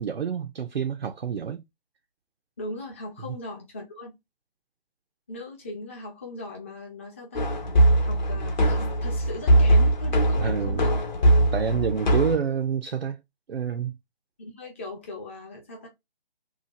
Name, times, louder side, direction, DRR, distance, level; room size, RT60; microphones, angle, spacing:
voice 1, 0.0-1.6 3.3-3.4 10.4-10.8 11.5-13.2 13.5-14.0, right 7 dB, 75° right, 0.6 m, -28 dB
voice 2, 2.6-4.1 5.3-7.5 8.0-11.0 14.4-15.9, left 2 dB, 15° left, 0.5 m, -39 dB
sound 1, 7.4-12.4, right 1 dB, 45° left, 0.9 m, -21 dB
2.8 x 2.3 x 2.7 m
figure-of-eight pair, 150°, 30 cm